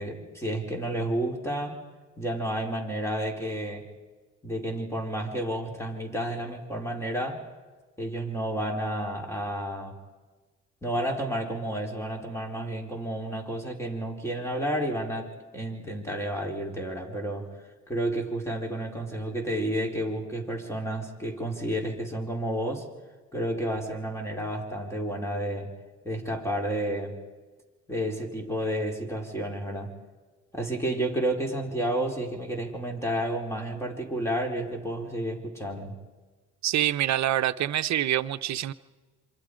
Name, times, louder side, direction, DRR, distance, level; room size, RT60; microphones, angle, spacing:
voice 1, 0.0-1.8 2.2-3.9 4.4-7.4 8.0-10.0 10.8-17.5 17.9-22.9 23.3-25.7 26.0-27.2 27.9-29.9 30.5-35.9, right 1 dB, 10° left, 4.7 m, -31 dB
voice 2, 36.6-38.7, right 12 dB, 65° right, 0.9 m, -26 dB
27.5 x 25.5 x 5.2 m
cardioid pair, 90°, 30 cm